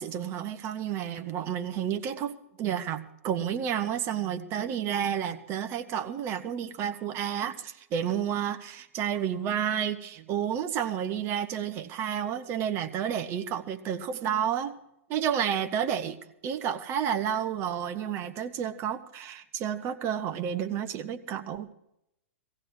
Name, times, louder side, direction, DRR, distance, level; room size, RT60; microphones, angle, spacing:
voice 1, 0.0-14.7 15.1-16.2 16.4-21.7, right 9 dB, 35° right, 10 dB, 1.1 m, -31 dB
18.0 x 15.5 x 4.8 m, 0.81 s
figure-of-eight pair, 105°, 7 cm